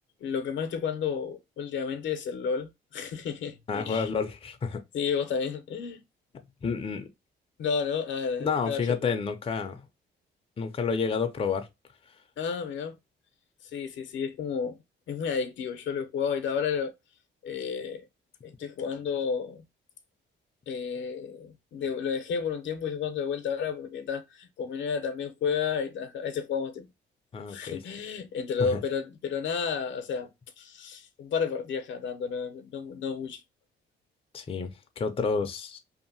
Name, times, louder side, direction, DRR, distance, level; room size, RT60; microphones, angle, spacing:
voice 1, 0.2-4.1 4.9-6.0 7.6-9.1 12.4-13.0 13.6-14.8 15.1-16.9 17.4-18.0 18.4-19.6 20.7-26.9 27.5-30.3 30.6-33.4, left 6 dB, 70° left, 0.7 m, -31 dB
voice 2, 3.7-4.8 6.6-7.1 8.4-9.8 10.6-11.7 27.3-27.8 28.6-28.8 34.3-35.8, left 5 dB, 30° left, 0.5 m, -30 dB
2.7 x 2.5 x 2.6 m
cardioid pair, 90°, 20 cm